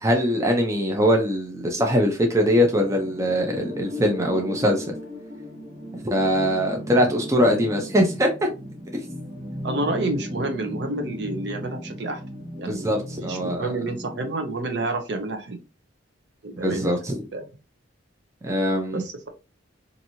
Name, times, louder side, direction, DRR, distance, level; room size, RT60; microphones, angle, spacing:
voice 1, 0.0-4.9 6.0-8.5 12.6-13.7 16.6-17.1 18.4-19.0, equal, 15° right, 0.5 m, -22 dB
sound 1, 2.4-14.4, equal, 35° right, 1.4 m, -36 dB
voice 2, 9.6-12.2 12.6-15.6 16.4-17.0 17.3-17.5 18.9-19.3, right 2 dB, 55° right, 0.6 m, -29 dB
2.9 x 2.6 x 2.7 m
head